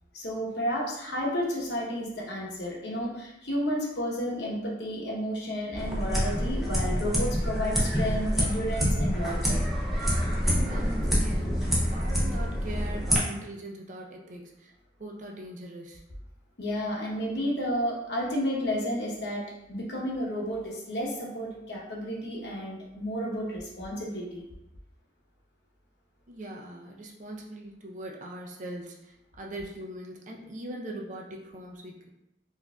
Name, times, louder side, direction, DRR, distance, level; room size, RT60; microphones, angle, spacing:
voice 1, 0.1-9.6 16.6-24.4, equal, 70° left, -3 dB, 0.9 m, -32 dB
sound 1, 5.8-13.2, equal, ahead, 0.7 m, -27 dB
voice 2, 10.4-11.7 11.9-14.7 15.0-16.0 26.3-32.1, right 1 dB, 45° right, 0 dB, 0.5 m, -41 dB
4.6 x 2.5 x 2.3 m, 0.90 s
head